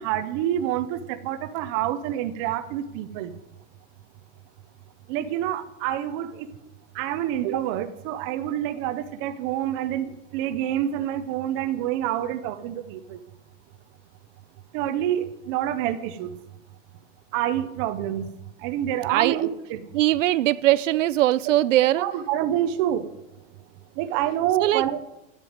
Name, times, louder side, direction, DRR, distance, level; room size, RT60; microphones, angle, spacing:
voice 1, 0.0-3.3 5.1-6.5 6.9-13.2 14.7-16.3 17.3-18.3 18.6-19.8 22.0-23.1 24.0-25.0, right 11 dB, 20° right, 0.5 m, -27 dB
voice 2, 19.9-22.1 24.6-24.8, right 15 dB, 80° right, 0.6 m, -20 dB
10.5 x 8.1 x 9.3 m
supercardioid pair, 170°, 37 cm